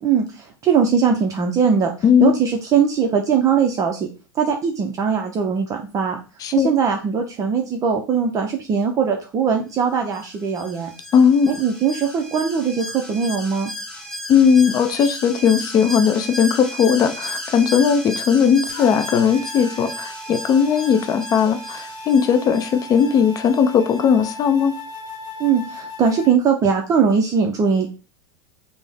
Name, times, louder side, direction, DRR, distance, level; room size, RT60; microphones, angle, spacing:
voice 1, 0.0-1.9 2.2-4.1 4.3-6.2 6.5-10.9 11.5-13.7 25.4-27.9, right 6 dB, 30° right, 0.5 m, -20 dB
voice 2, 2.0-2.3 6.4-6.7 11.1-11.5 14.3-24.7, left 7 dB, 35° left, 0.5 m, -17 dB
Alarm, 10.1-23.6 23.9-24.0, equal, 5° left, 1.0 m, -34 dB
sound 1, 18.7-26.3, left 2 dB, 55° left, 0.9 m, -36 dB
3.4 x 2.0 x 3.4 m
hypercardioid pair, 100°, 11 cm